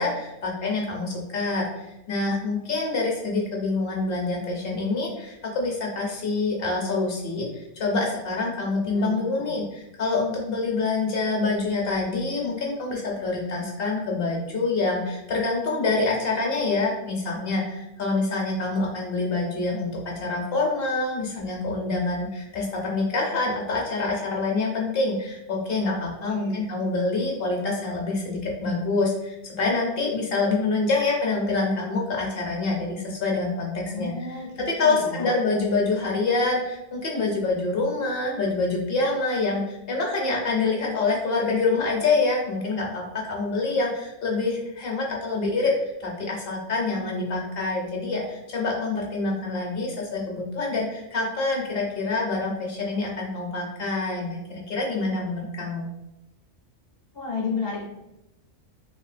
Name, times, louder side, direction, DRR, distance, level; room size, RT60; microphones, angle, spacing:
voice 1, 0.0-55.9, left 3 dB, 60° left, -1 dB, 0.8 m, -26 dB
voice 2, 8.8-9.6 26.3-26.7 33.8-34.5 34.8-35.3 57.1-58.0, left 4 dB, 35° left, -2 dB, 0.4 m, -33 dB
3.3 x 2.4 x 2.5 m, 0.91 s
omnidirectional pair, 1.2 m